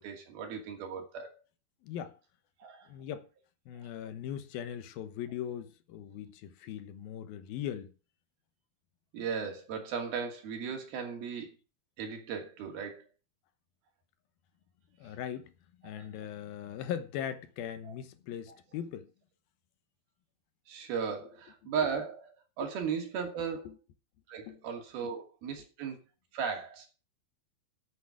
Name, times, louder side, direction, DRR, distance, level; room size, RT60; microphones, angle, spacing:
voice 1, 0.0-1.4 2.6-2.9 3.8-3.9 9.1-11.5 12.0-13.1 15.8-16.1 17.8-17.9 18.5-18.6 20.7-22.3 22.6-23.7 24.3-26.0 26.3-26.9, right 6 dB, 70° right, 4.3 m, -36 dB
voice 2, 1.8-2.2 2.9-3.3 3.7-7.9 15.0-15.5 15.8-19.1 23.7-23.8 24.5-24.6 25.0-25.1, left 9 dB, 75° left, 2.8 m, -39 dB
9.8 x 8.3 x 7.2 m
omnidirectional pair, 4.5 m